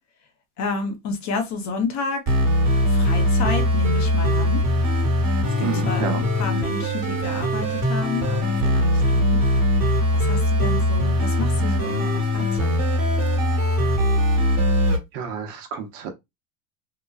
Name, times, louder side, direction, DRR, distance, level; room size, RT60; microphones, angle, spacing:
voice 1, 0.6-2.4 2.9-4.6 5.6-9.4 9.8-12.8, left 3 dB, 45° left, 0.9 m, -30 dB
sound 1, 2.3-15.0, left 1 dB, 40° right, 1.4 m, -21 dB
voice 2, 5.6-6.2 15.1-16.1, right 7 dB, 65° right, 0.9 m, -30 dB
2.9 x 2.2 x 2.3 m
supercardioid pair, 105°, 40 cm